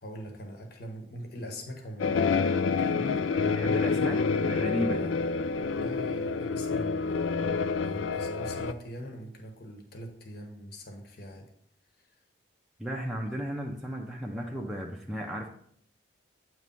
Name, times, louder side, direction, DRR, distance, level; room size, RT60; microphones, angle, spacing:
voice 1, 0.0-2.1 2.8-3.2 4.9-5.2 5.8-7.3 7.8-11.4 12.0-12.1, equal, 50° left, 3 dB, 1.0 m, -42 dB
sound 1, 2.0-8.7, left 4 dB, 75° left, 0.4 m, -28 dB
voice 2, 3.5-5.1 12.8-15.5, equal, ahead, -2 dB, 0.5 m, -34 dB
8.5 x 3.2 x 5.3 m, 0.64 s
head